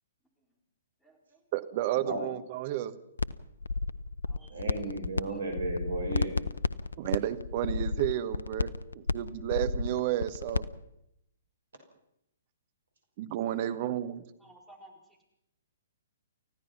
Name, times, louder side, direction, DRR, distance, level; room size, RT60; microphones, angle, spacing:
voice 1, 1.0-1.4 4.2-4.9 5.2-5.4 13.4-13.7 14.1-14.2 14.4-15.2, right 1 dB, 5° left, 1 dB, 4.5 m, -57 dB
voice 2, 1.5-3.0 7.0-10.6 13.2-14.2, right 13 dB, 40° right, 11 dB, 1.4 m, -32 dB
sound 1, 3.2-3.3 3.6-5.2 5.5-10.7, left 4 dB, 75° left, 0.7 m, -31 dB
voice 3, 4.5-6.4, right 2 dB, 65° right, 4 dB, 6.2 m, -34 dB
29.5 x 15.5 x 5.9 m, 0.80 s
figure-of-eight pair, 120°, 0 cm